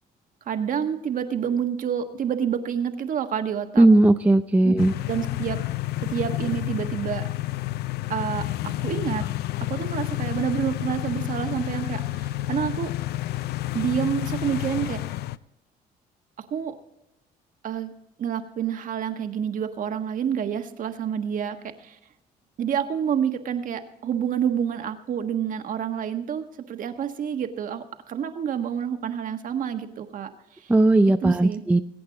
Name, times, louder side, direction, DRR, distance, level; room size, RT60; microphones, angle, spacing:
voice 1, 0.4-3.9 4.6-4.7 5.1-5.6 6.0-7.3 8.1-9.3 9.7-12.9 13.7-15.0 16.4-16.7 17.6-17.9 18.2-22.0 22.6-30.7 31.2-31.6, right 8 dB, 50° right, 7 dB, 1.4 m, -28 dB
voice 2, 3.8-4.9 30.7-31.8, right 2 dB, 10° right, 8 dB, 0.5 m, -17 dB
sound 1, 4.8-15.4, left 16 dB, 70° left, 0.5 m, -30 dB
22.5 x 8.6 x 3.9 m, 0.87 s
cardioid pair, 110°, 17 cm